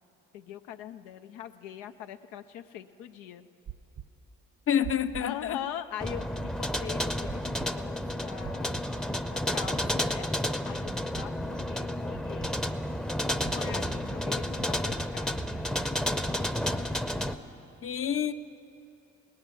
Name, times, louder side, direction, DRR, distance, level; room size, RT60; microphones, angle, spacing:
voice 1, 0.3-3.5 5.2-6.3 6.6-8.7 9.3-10.3 10.6-12.6 13.4-15.4 15.8-15.9, left 10 dB, 85° left, 7 dB, 0.5 m, -41 dB
sound 1, 3.7-4.1 4.8-5.2 6.1-6.5 7.3-7.7 8.4-8.8 9.6-10.0 10.8-11.2 12.1-12.5 13.4-13.8 14.6-15.0, right 10 dB, 45° right, 0.6 m, -42 dB
voice 2, 4.7-5.6 17.8-18.3, left 9 dB, 45° left, 11 dB, 0.6 m, -28 dB
sound 2, 6.0-17.4, left 1 dB, ahead, 0.6 m, -31 dB
18.5 x 6.7 x 9.1 m, 3.0 s
supercardioid pair, 50°, 31 cm